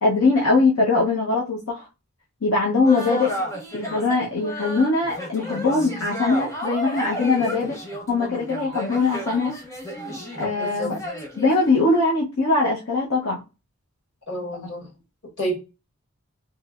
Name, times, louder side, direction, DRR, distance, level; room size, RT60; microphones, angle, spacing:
voice 1, 0.0-1.8 2.4-3.3 3.7-7.8 8.1-9.6 10.4-11.0 11.4-13.4, left 3 dB, 75° left, -4 dB, 0.8 m, -21 dB
sound 1, 2.8-12.0, equal, 15° left, 0.7 m, -32 dB
voice 2, 10.6-11.0 14.3-14.9 15.4-15.6, right 1 dB, 55° left, -2 dB, 1.6 m, -29 dB
3.1 x 2.9 x 2.4 m, 0.28 s
head